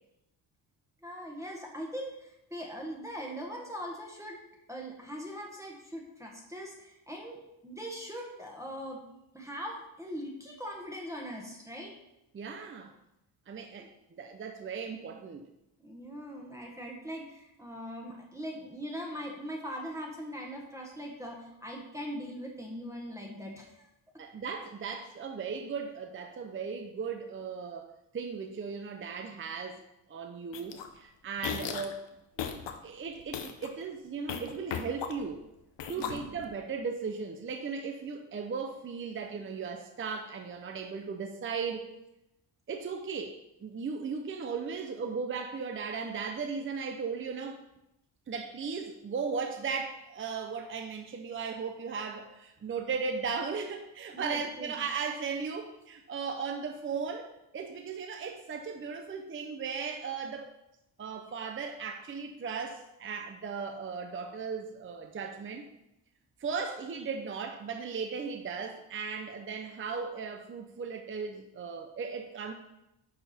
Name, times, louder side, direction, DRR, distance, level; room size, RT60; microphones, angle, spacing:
voice 1, 1.0-4.4 4.7-9.0 9.3-11.9 13.8-13.9 15.8-23.9 35.9-36.4 54.1-54.7, equal, 5° right, -1 dB, 1.3 m, -41 dB
voice 2, 12.3-12.9 13.5-15.5 24.2-29.8 30.1-32.0 32.8-35.5 35.9-41.9 42.7-47.6 48.3-57.3 57.5-60.5 61.0-65.7 66.4-72.5, right 5 dB, 30° right, 5 dB, 0.6 m, -37 dB
sound 1, 30.5-30.9 31.4-31.9 32.4-32.7 33.2-33.7 34.3-35.4 35.8-36.5, left 8 dB, 70° left, 1.0 m, -36 dB
11.0 x 4.7 x 4.3 m, 0.88 s
cardioid pair, 135°, 44 cm